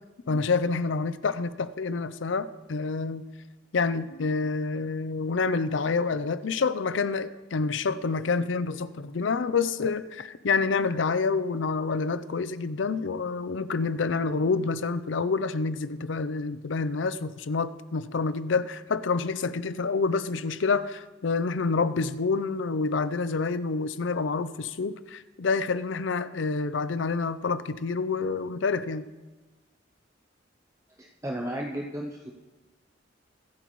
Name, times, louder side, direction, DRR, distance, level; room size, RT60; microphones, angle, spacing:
voice 1, 0.3-3.2 3.7-29.0, left 4 dB, 75° left, 14 dB, 0.5 m, -28 dB
voice 2, 31.0-32.3, right 1 dB, 15° right, 0 dB, 0.6 m, -34 dB
23.0 x 8.2 x 3.1 m, 1.2 s
head